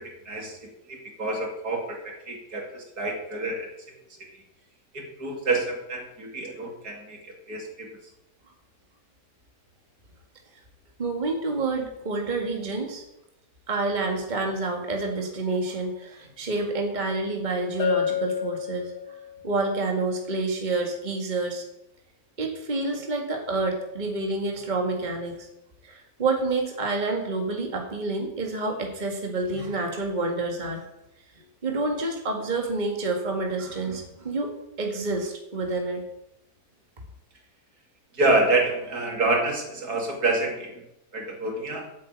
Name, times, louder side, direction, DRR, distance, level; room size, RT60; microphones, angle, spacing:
voice 1, 0.0-3.7 4.3-4.4 4.9-8.0 38.1-40.8 41.1-41.9, right 2 dB, 65° right, 1 dB, 2.8 m, -28 dB
voice 2, 11.0-13.0 13.7-18.9 19.4-21.6 22.4-25.5 25.8-30.8 31.6-34.5 34.8-36.0, right 3 dB, 25° right, 2 dB, 1.9 m, -28 dB
Bell, 17.8-19.4, left 8 dB, 85° left, 3.7 m, -28 dB
8.6 x 8.5 x 8.6 m, 0.85 s
omnidirectional pair, 1.8 m